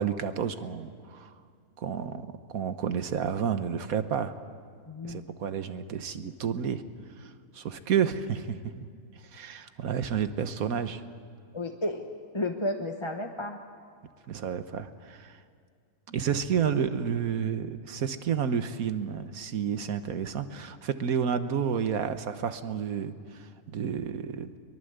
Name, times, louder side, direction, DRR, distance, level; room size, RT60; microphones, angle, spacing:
voice 1, 0.0-1.3 1.8-4.3 5.0-6.8 7.2-8.9 9.3-11.0 14.3-15.4 16.1-24.5, right 7 dB, 85° right, 10 dB, 1.5 m, -30 dB
voice 2, 4.9-5.2 11.5-12.0 12.3-13.6, left 1 dB, 20° left, 3 dB, 1.0 m, -32 dB
23.5 x 22.5 x 8.1 m, 2.2 s
omnidirectional pair, 1.5 m